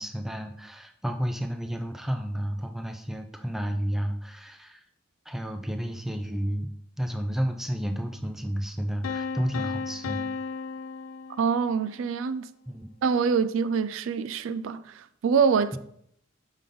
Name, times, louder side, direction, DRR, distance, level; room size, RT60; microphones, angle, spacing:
voice 1, 0.0-4.8 5.3-6.7 7.0-10.3 12.7-12.9, equal, ahead, 0.4 m, -31 dB
sound 1, 9.0-11.9, left 5 dB, 85° left, 0.4 m, -34 dB
voice 2, 11.4-12.5 13.0-15.8, right 6 dB, 70° right, 0.3 m, -25 dB
6.7 x 5.3 x 3.8 m
head